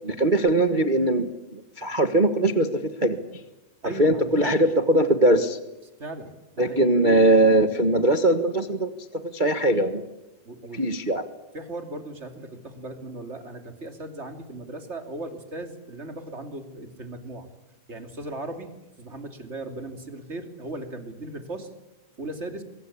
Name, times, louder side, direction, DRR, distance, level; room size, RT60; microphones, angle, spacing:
voice 1, 0.0-3.2 4.0-5.6 6.6-8.9 9.3-10.0 10.7-11.2, right 1 dB, 55° right, 8 dB, 0.5 m, -21 dB
voice 2, 3.8-4.7 6.0-6.3 6.6-6.9 10.4-10.8 11.5-17.5 17.9-18.7 19.0-21.7 22.2-22.6, right 2 dB, 25° right, 6 dB, 2.7 m, -37 dB
24.0 x 23.5 x 8.6 m, 1.0 s
omnidirectional pair, 3.4 m